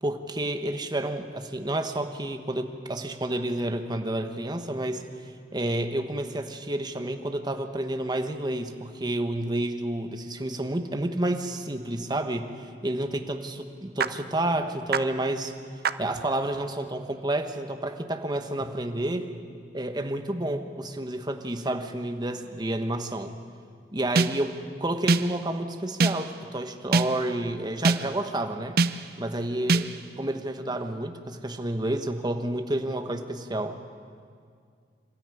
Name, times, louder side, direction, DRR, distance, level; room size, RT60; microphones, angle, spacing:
voice 1, 0.0-5.0 5.5-12.5 12.8-15.5 16.0-19.3 19.7-23.3 23.9-28.8 29.2-29.9 30.2-33.8, right 1 dB, 25° right, 6 dB, 1.2 m, -30 dB
sound 1, 14.0-14.1 14.9-15.0 15.8-15.9 24.2-24.6 25.1-25.5 26.0-26.4 26.9-27.4 27.8-28.3 28.8-29.2 29.7-30.1, right 4 dB, 60° right, 0.6 m, -25 dB
26.5 x 13.5 x 9.3 m, 2.1 s
head